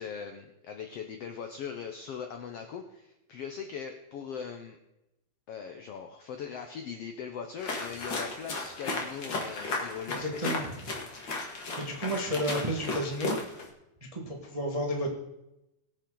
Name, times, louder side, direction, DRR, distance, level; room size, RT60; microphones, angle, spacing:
voice 1, 0.0-4.8 5.5-10.7, left 7 dB, 80° left, 5 dB, 1.4 m, -40 dB
sound 1, 7.6-13.7, left 3 dB, 40° left, 2.1 m, -35 dB
voice 2, 10.1-10.7 11.4-13.4 14.1-15.1, equal, 75° right, 0 dB, 0.3 m, -32 dB
22.5 x 7.4 x 3.8 m, 0.91 s
omnidirectional pair, 3.9 m